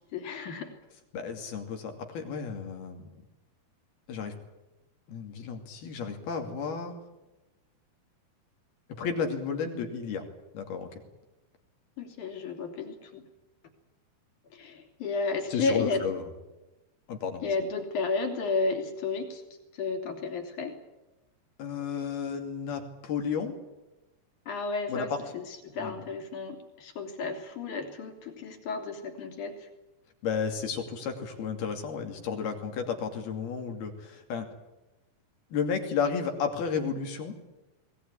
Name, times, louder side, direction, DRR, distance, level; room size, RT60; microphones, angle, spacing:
voice 1, 0.1-0.7 12.0-13.2 14.5-16.0 17.4-19.4 19.7-20.8 24.5-29.7, left 4 dB, 55° left, 5 dB, 4.2 m, -32 dB
voice 2, 1.1-3.2 4.1-4.3 5.1-6.9 9.0-10.3 10.5-10.9 15.5-16.2 17.1-17.5 21.6-23.6 24.9-25.2 25.8-25.9 30.2-34.5 35.5-37.3, left 6 dB, 75° left, 4 dB, 4.5 m, -32 dB
21.5 x 19.0 x 9.8 m, 1.0 s
omnidirectional pair, 4.6 m